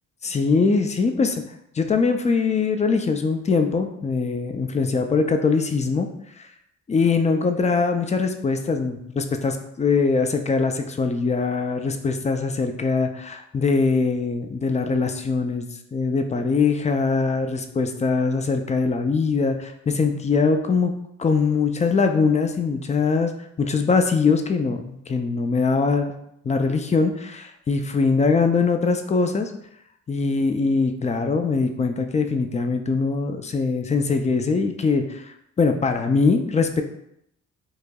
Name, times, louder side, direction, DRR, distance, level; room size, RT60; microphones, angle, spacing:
voice 1, 0.2-1.4 1.8-6.1 6.9-20.9 21.2-23.3 23.6-26.1 26.4-29.5 30.1-35.2 35.6-36.8, left 4 dB, 25° left, 6 dB, 0.4 m, -22 dB
4.6 x 2.6 x 2.3 m, 0.76 s
cardioid pair, 90°, 30 cm